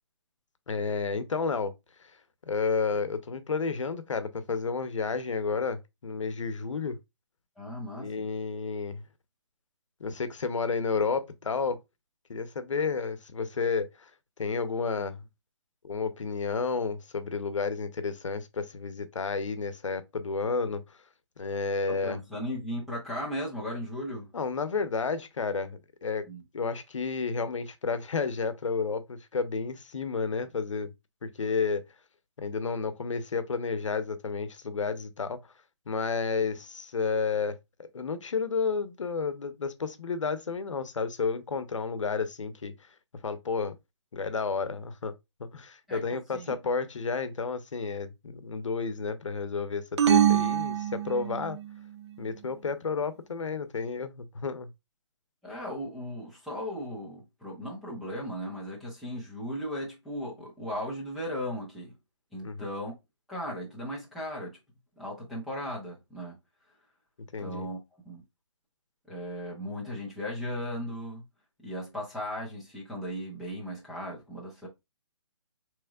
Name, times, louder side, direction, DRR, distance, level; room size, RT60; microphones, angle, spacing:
voice 1, 0.7-1.7 2.0-2.1 2.5-7.0 8.0-9.0 10.0-11.8 12.3-14.1 14.4-15.2 15.8-21.0 21.4-22.2 24.3-26.2 26.5-30.9 31.2-31.8 32.4-35.4 35.9-42.7 43.2-43.7 44.1-45.1 45.4-51.6 52.2-54.7 62.4-62.7 67.3-67.7, left 5 dB, 85° left, 0.7 m, -31 dB
voice 2, 7.6-8.1 21.9-24.3 26.3-26.4 45.9-46.6 55.4-61.9 62.3-62.9 63.3-64.6 65.0-66.4 67.4-67.8 68.0-68.2 69.1-71.2 71.6-74.7, equal, ahead, 0.5 m, -36 dB
sound 1, 50.0-51.7, right 9 dB, 65° right, 0.5 m, -24 dB
4.3 x 3.1 x 2.3 m
hypercardioid pair, 165°, 16 cm